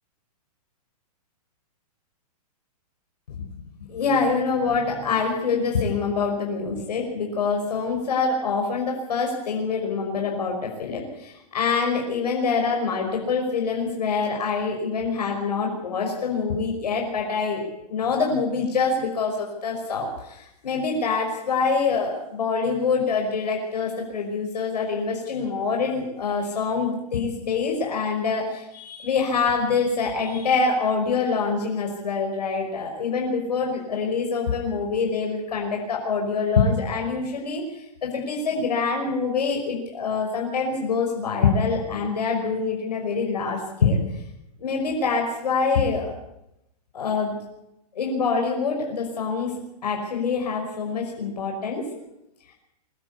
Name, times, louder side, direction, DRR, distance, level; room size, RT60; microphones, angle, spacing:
voice 1, 3.7-17.6 17.9-44.0 44.6-46.1 46.9-47.3 47.9-49.5 49.8-51.9, left 5 dB, 85° left, 0 dB, 5.5 m, -25 dB
24.0 x 13.0 x 8.5 m, 0.87 s
hypercardioid pair, 160°, 20 cm